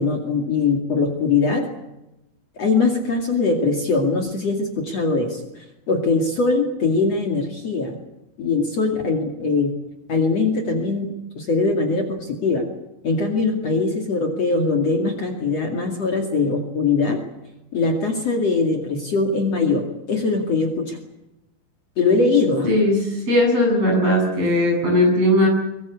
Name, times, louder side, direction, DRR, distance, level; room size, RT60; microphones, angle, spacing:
voice 1, 0.0-1.6 2.6-5.4 5.9-8.0 8.4-9.7 10.1-11.1 11.4-12.7 13.0-17.2 17.7-21.0 22.0-22.7, left 4 dB, 45° left, 2 dB, 3.2 m, -21 dB
voice 2, 22.6-25.5, left 1 dB, 40° right, 1 dB, 9.0 m, -18 dB
23.5 x 21.5 x 8.5 m, 0.92 s
omnidirectional pair, 4.3 m